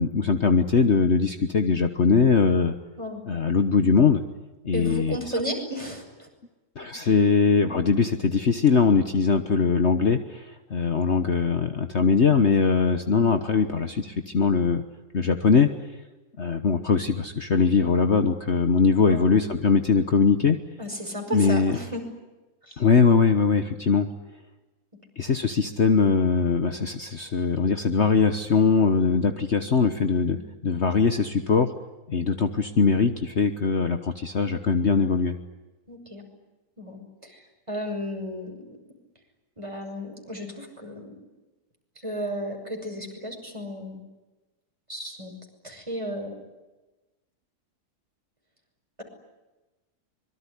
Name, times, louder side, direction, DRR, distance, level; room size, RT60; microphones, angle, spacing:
voice 1, 0.0-2.7 3.2-4.2 4.6-5.2 6.8-14.8 15.1-15.7 16.4-20.6 21.3-21.8 22.8-24.1 25.2-30.4 30.6-31.7 32.1-35.4, left 5 dB, 45° left, 8 dB, 1.4 m, -21 dB
voice 2, 4.7-6.3 7.0-7.1 11.1-11.2 19.1-19.3 20.8-22.0 22.6-22.8 30.4-30.5 35.9-36.2 36.8-38.6 39.6-41.1 42.0-44.0 44.9-45.3 45.6-46.3, equal, 20° right, 3 dB, 6.2 m, -34 dB
25.0 x 23.0 x 10.0 m, 1.1 s
omnidirectional pair, 1.7 m